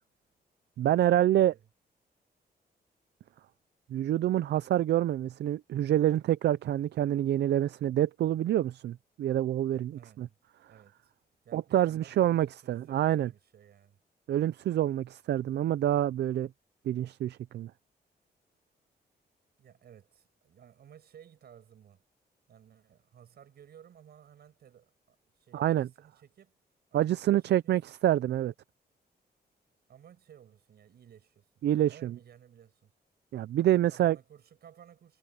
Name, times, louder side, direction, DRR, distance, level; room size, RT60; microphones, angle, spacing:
voice 1, 0.8-1.5 3.9-10.3 11.5-13.3 14.3-16.5 16.9-17.7 25.5-25.9 26.9-28.5 31.6-32.1 33.3-34.2, right 12 dB, 90° right, 0.5 m, -27 dB
voice 2, 1.3-1.7 9.9-10.4 10.7-11.1 11.4-14.0 19.6-22.0 22.5-26.6 26.9-27.8 29.9-31.5 31.8-32.9 33.6-35.2, right 9 dB, 70° right, 6.7 m, -56 dB
wide cardioid pair, 155°, 17 cm